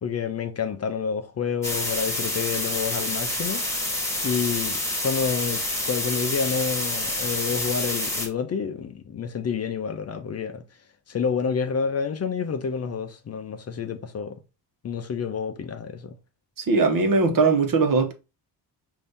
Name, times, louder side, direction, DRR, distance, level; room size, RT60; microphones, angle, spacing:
voice 1, 0.0-3.9 4.2-10.6 11.1-14.4 14.8-16.2, left 6 dB, 40° left, 0.5 m, -29 dB
sound 1, 1.6-8.3, left 1 dB, 5° left, 1.3 m, -28 dB
voice 2, 16.6-18.1, right 4 dB, 55° right, 1.1 m, -20 dB
5.5 x 2.7 x 3.5 m
wide cardioid pair, 145°, 41 cm